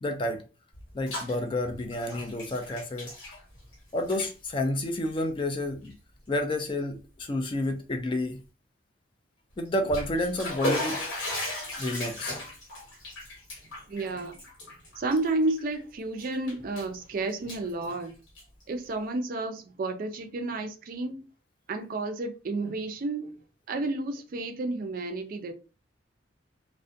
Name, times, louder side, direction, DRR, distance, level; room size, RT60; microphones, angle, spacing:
voice 1, 0.0-0.4 0.9-3.1 3.9-5.9 6.3-8.4 9.6-11.0 11.8-12.4, left 1 dB, 25° left, 0.3 m, -30 dB
Bathtub (filling or washing), 0.7-1.4 1.6-3.7 4.0-4.3 5.1-5.2 5.8-5.9 6.4-6.5 9.7-15.8 16.2-17.0 17.3-18.6, left 1 dB, 85° left, 1.1 m, -36 dB
voice 2, 13.9-18.1 18.7-21.3 21.7-23.3 23.7-25.5, right 2 dB, 50° right, 0.4 m, -31 dB
2.4 x 2.1 x 2.5 m
head